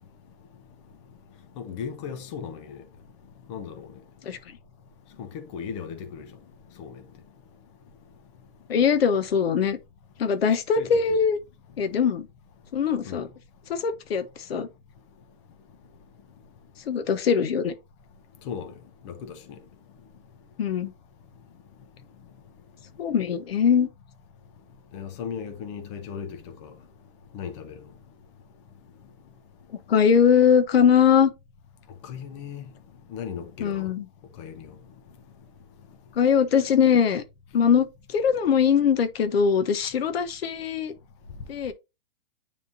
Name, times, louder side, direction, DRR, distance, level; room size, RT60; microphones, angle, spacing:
voice 1, 1.6-2.8 3.5-3.9 5.2-6.3 6.8-6.9 10.8-10.9 13.1-13.2 18.5-18.7 19.0-19.4 24.9-26.4 27.3-27.7 32.0-32.6 33.1-33.9 34.4-34.7, left 7 dB, 30° left, 0.9 m, -36 dB
voice 2, 8.7-9.8 10.2-11.4 11.8-12.3 12.7-13.3 13.7-14.2 14.5-14.7 16.9-17.7 20.6-20.9 23.0-23.9 29.9-31.3 33.6-34.0 36.2-37.2 37.5-40.9 41.5-41.7, left 7 dB, 80° left, 1.2 m, -21 dB
9.5 x 3.7 x 2.8 m
hypercardioid pair, 170°, 30 cm